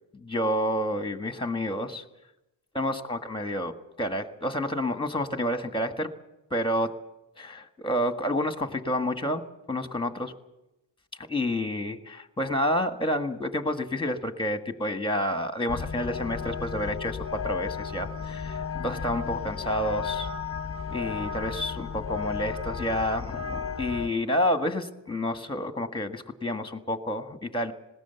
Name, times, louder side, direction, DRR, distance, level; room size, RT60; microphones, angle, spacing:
voice 1, 0.1-2.0 2.7-6.1 6.5-7.0 7.4-10.3 11.2-20.3 20.9-27.7, left 1 dB, 10° left, 8 dB, 1.6 m, -29 dB
sound 1, 15.7-24.1, left 6 dB, 30° left, 1.1 m, -34 dB
20.0 x 17.5 x 8.2 m, 0.93 s
cardioid pair, 85°, 45 cm